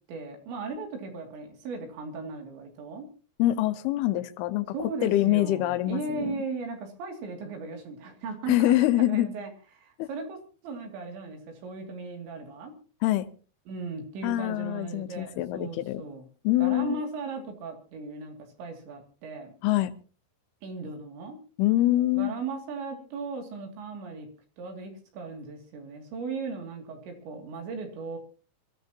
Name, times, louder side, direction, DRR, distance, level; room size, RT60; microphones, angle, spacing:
voice 1, 0.1-3.1 4.7-12.7 13.7-16.3 16.6-19.5 20.6-21.4 22.1-24.3 24.6-28.2, right 4 dB, 85° right, 3 dB, 5.0 m, -37 dB
voice 2, 3.4-4.7 5.0-6.3 8.5-9.3 10.0-10.1 13.0-13.3 14.2-16.0 16.4-17.0 19.6-19.9 21.6-22.3, left 15 dB, 75° left, 10 dB, 2.7 m, -24 dB
25.0 x 15.0 x 2.9 m, 0.38 s
omnidirectional pair, 5.0 m